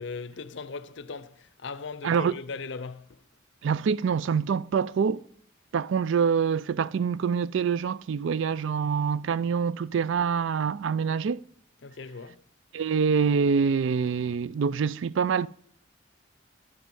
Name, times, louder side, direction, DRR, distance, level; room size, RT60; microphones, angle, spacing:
voice 1, 0.0-3.2 11.8-12.4, left 4 dB, 65° left, 0.6 m, -38 dB
voice 2, 2.0-2.3 3.6-5.2 5.7-11.4 12.7-15.5, right 6 dB, 70° right, 0.4 m, -25 dB
12.0 x 7.6 x 5.4 m
head